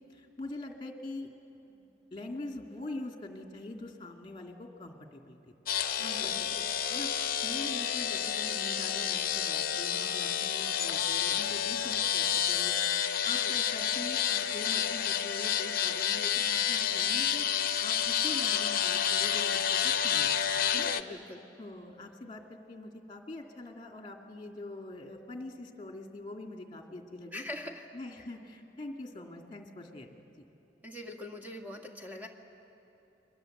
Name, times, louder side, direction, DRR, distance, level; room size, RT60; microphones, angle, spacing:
voice 1, 0.1-1.3 1.7-5.5 6.0-6.4 6.9-20.9 21.6-27.4 27.9-30.4, left 2 dB, 25° left, 2 dB, 2.4 m, -44 dB
sound 1, 5.7-21.0, left 9 dB, 50° left, 0.8 m, -29 dB
voice 2, 6.0-6.6 13.3-13.5 20.7-21.4 27.3-27.9 30.8-32.3, left 1 dB, 10° right, 2 dB, 2.0 m, -43 dB
30.0 x 23.0 x 7.9 m, 2.8 s
head